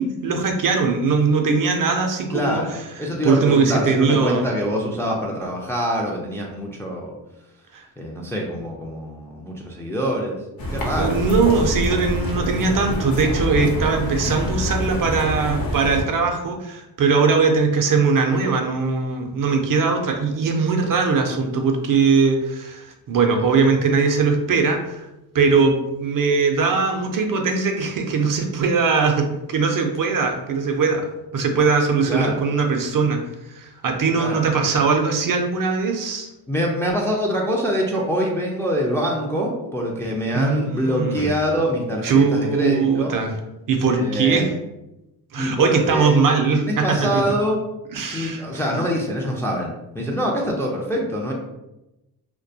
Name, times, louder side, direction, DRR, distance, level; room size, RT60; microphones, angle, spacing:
voice 1, 0.0-2.6 3.2-4.5 7.7-7.8 11.0-25.1 25.3-31.1 31.3-33.2 33.5-36.3 40.3-41.3 42.0-43.3 43.7-44.5 45.3-47.2 47.9-48.6, right 4 dB, 50° right, 3 dB, 0.5 m, -20 dB
voice 2, 2.3-7.2 8.0-10.4 10.7-11.2 32.1-32.4 34.2-34.4 36.5-43.2 43.9-44.6 45.4-46.2 46.5-47.6 48.1-51.3, equal, 5° left, -1 dB, 0.4 m, -25 dB
sound 1, 10.6-16.0, left 1 dB, 50° left, 0.7 m, -26 dB
2.3 x 2.2 x 2.6 m, 0.95 s
cardioid pair, 65°, 45 cm